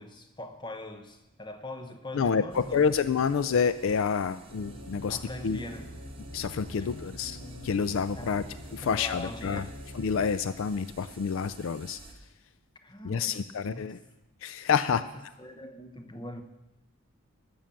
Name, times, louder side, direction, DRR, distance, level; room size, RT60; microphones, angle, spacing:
voice 1, 0.0-2.9 5.1-5.9 6.7-6.9 8.1-8.5 8.8-9.8 12.8-13.4 13.6-14.0 14.9-15.1 15.4-16.4, left 1 dB, 20° left, 7 dB, 0.9 m, -42 dB
voice 2, 2.1-5.6 6.3-8.4 8.7-9.7 9.9-12.0 13.0-14.0 14.4-15.0, left 6 dB, 65° left, 14 dB, 0.4 m, -28 dB
sound 1, 2.5-12.1, right 2 dB, 25° right, 1.2 m, -52 dB
sound 2, 4.5-10.3, left 1 dB, 85° left, 4.1 m, -44 dB
12.5 x 7.1 x 7.5 m, 0.97 s
head